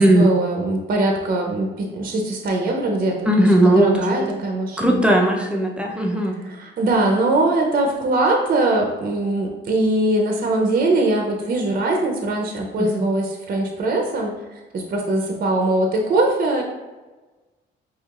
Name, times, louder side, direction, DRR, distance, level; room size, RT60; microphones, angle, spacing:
voice 1, 0.0-5.0 6.4-16.6, right 2 dB, 45° right, 1 dB, 0.7 m, -21 dB
voice 2, 3.2-4.2 4.8-6.4 12.8-13.1, right 1 dB, 5° right, 0 dB, 0.6 m, -17 dB
4.6 x 3.1 x 2.4 m, 1.2 s
cardioid pair, 90°, 20 cm